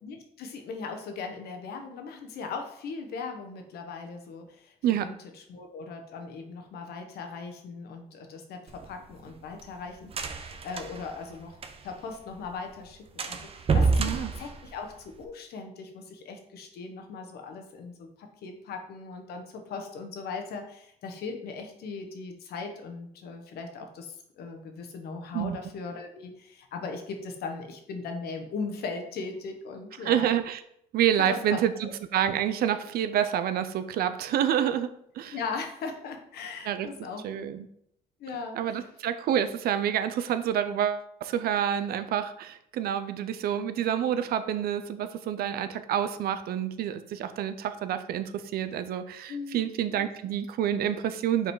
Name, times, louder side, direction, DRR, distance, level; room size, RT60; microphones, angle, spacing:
voice 1, 0.0-5.1 5.5-30.3 31.2-31.9 35.3-37.5 38.2-38.9 49.3-49.6, left 4 dB, 70° left, 5 dB, 1.2 m, -39 dB
sound 1, 8.7-12.1 12.4-12.5 12.8-12.9 13.2-15.2, right 4 dB, 35° right, 0.7 m, -29 dB
voice 2, 14.0-14.3 25.3-25.6 30.0-30.6 30.9-35.4 36.7-36.9 37.2-37.7 38.6-51.5, right 10 dB, 65° right, 11 dB, 0.6 m, -28 dB
5.5 x 4.0 x 4.7 m, 0.72 s
cardioid pair, 110°, 17 cm